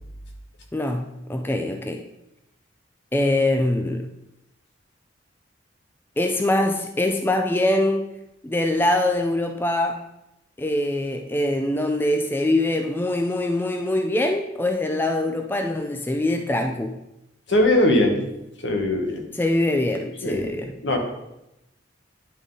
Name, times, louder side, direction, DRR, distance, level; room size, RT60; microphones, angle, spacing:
voice 1, 0.7-2.0 3.1-4.1 6.2-8.1 8.4-10.0 10.6-17.0 19.4-20.7, left 1 dB, 10° left, 5 dB, 0.3 m, -23 dB
voice 2, 17.5-18.3 18.6-19.3 20.2-21.0, left 1 dB, 75° left, 2 dB, 1.2 m, -21 dB
10.0 x 3.9 x 3.8 m, 0.89 s
head